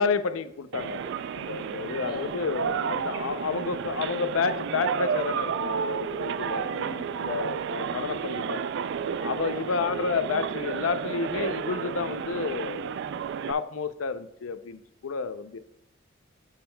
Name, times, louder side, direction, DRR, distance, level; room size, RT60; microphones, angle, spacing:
voice 1, 0.0-6.7 7.2-8.6 9.2-15.6, left 5 dB, 90° left, 11 dB, 0.5 m, -30 dB
sound 1, 0.7-13.5, right 7 dB, 60° right, 0.3 m, -31 dB
voice 2, 2.0-3.0 6.6-7.2 9.5-9.9, left 1 dB, ahead, -6 dB, 2.6 m, -42 dB
8.7 x 7.4 x 2.2 m, 0.82 s
head